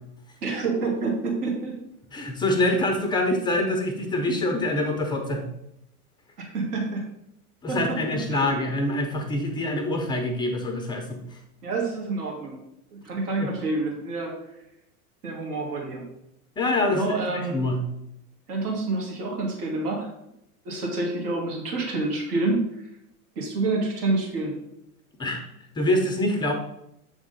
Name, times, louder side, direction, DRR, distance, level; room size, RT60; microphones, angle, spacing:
voice 1, 0.4-1.8 6.4-7.0 7.7-8.0 8.3-8.7 11.6-12.6 12.9-14.3 15.2-16.1 16.9-17.7 18.5-20.1 20.7-22.6 23.4-24.5, right 3 dB, 75° right, 0 dB, 1.8 m, -28 dB
voice 2, 2.1-5.4 7.6-11.2 13.4-13.5 16.6-17.8 25.2-25.4 25.8-26.5, left 1 dB, 10° left, 4 dB, 0.3 m, -25 dB
7.0 x 3.5 x 3.9 m, 0.81 s
hypercardioid pair, 105°, 46 cm